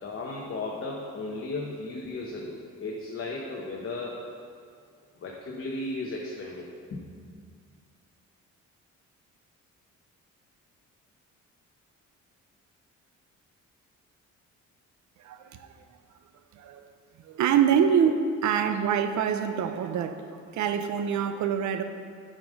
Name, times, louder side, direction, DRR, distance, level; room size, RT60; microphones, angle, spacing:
voice 1, 0.0-4.2 5.2-7.1, left 2 dB, 45° left, -2 dB, 1.0 m, -35 dB
voice 2, 15.2-15.7 16.5-16.8 17.2-21.8, right 8 dB, 70° right, 9 dB, 0.7 m, -25 dB
7.2 x 5.2 x 6.4 m, 2.2 s
cardioid pair, 90°, 30 cm